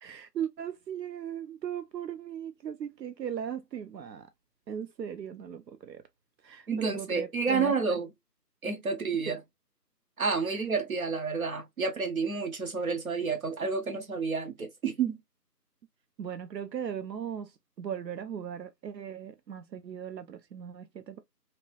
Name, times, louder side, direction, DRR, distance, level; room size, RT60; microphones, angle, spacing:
voice 1, 0.0-4.3 4.7-6.0 6.4-8.0 9.3-9.4 16.2-21.2, right 8 dB, 80° right, 0.6 m, -38 dB
voice 2, 6.7-8.1 8.6-9.4 10.2-15.2, right 5 dB, 60° right, 0.8 m, -30 dB
2.9 x 2.5 x 3.0 m
figure-of-eight pair, 170°, 49 cm